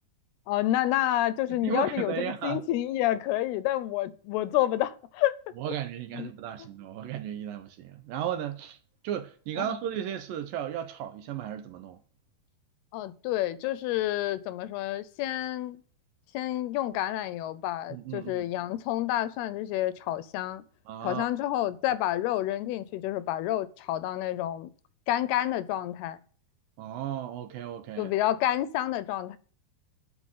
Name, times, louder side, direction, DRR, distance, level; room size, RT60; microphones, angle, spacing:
voice 1, 0.5-5.4 6.1-6.3 6.6-6.7 9.6-9.8 12.9-15.8 16.3-20.6 21.0-24.7 25.1-26.2 28.0-29.4, left 13 dB, 85° left, 2.7 m, -29 dB
voice 2, 1.5-2.6 5.6-8.8 9.0-12.0 17.9-18.5 20.9-21.3 26.8-28.1, right 10 dB, 75° right, 2.3 m, -35 dB
12.0 x 5.8 x 9.2 m
omnidirectional pair, 4.5 m